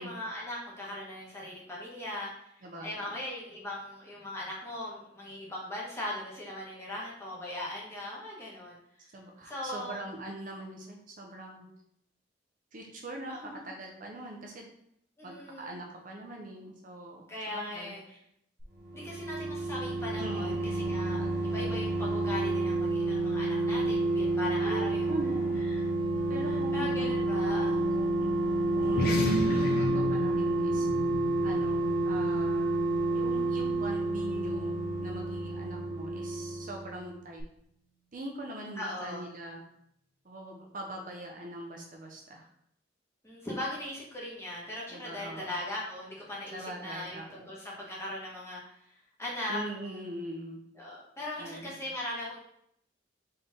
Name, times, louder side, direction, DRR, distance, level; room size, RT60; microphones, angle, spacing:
voice 1, 0.0-9.1 9.4-10.0 13.3-13.7 15.2-15.7 17.3-18.2 18.9-25.1 25.7-25.8 26.4-27.9 31.4-31.9 38.8-39.3 43.2-50.0 50.7-52.4, left 1 dB, 15° left, -5 dB, 1.4 m, -39 dB
voice 2, 2.6-3.2 9.1-11.7 12.7-13.4 13.6-14.7 15.2-17.9 20.2-21.3 24.6-25.6 26.3-27.1 27.4-28.4 28.7-29.1 29.4-30.9 31.4-32.8 33.1-37.4 38.1-39.6 40.2-42.5 44.9-45.5 46.5-47.5 49.5-50.6 51.4-51.8, right 1 dB, 45° right, 1 dB, 0.7 m, -42 dB
sound 1, 18.6-37.1 37.4-37.5, right 2 dB, 65° right, 1.2 m, -29 dB
sound 2, 28.8-33.6, left 1 dB, 55° left, 0.7 m, -33 dB
4.3 x 3.4 x 3.7 m, 0.72 s
head